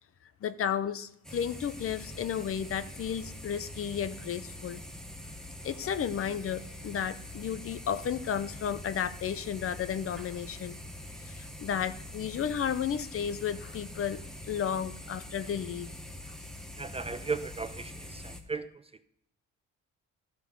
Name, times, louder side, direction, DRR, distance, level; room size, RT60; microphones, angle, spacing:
voice 1, 0.4-4.8 5.6-10.8 11.2-14.2 14.5-15.9, left 8 dB, 50° left, 14 dB, 0.6 m, -33 dB
sound 1, 1.2-18.4, left 1 dB, ahead, 1.1 m, -44 dB
voice 2, 16.8-18.7, right 4 dB, 20° right, 12 dB, 0.4 m, -36 dB
13.5 x 5.5 x 3.7 m, 0.77 s
cardioid pair, 90°, 30 cm